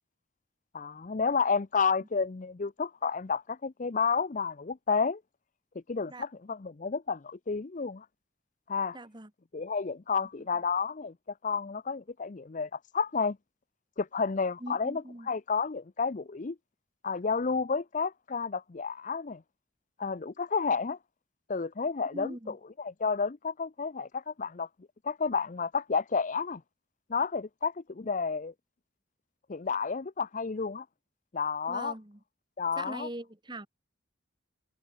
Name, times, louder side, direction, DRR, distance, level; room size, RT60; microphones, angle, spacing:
voice 1, 0.7-5.2 5.7-8.1 8.7-9.0 9.5-11.1 11.4-13.4 14.0-16.6 17.0-19.4 20.0-21.0 21.5-24.7 25.0-26.6 27.1-28.5 29.5-30.9 31.3-31.9 32.6-33.1, left 5 dB, 40° left, 0.5 m, -31 dB
voice 2, 8.9-9.3 14.6-15.3 22.1-22.6 31.7-32.2 32.8-33.7, right 1 dB, 25° right, 1.8 m, -41 dB
head